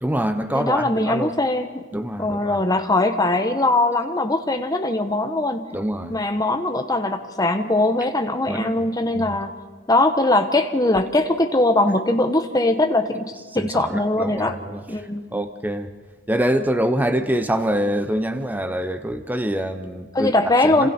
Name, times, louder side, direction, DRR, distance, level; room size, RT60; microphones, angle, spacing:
voice 1, 0.0-1.3 1.9-2.6 5.7-6.2 8.5-8.8 9.1-9.4 13.5-15.9 16.3-20.3 20.6-20.9, right 1 dB, 10° right, 9 dB, 0.9 m, -25 dB
voice 2, 0.5-1.8 2.2-5.7 6.1-9.6 9.9-14.6 14.9-15.3 20.1-20.9, left 2 dB, 15° left, 6 dB, 1.2 m, -21 dB
29.5 x 27.0 x 4.5 m, 1.5 s
head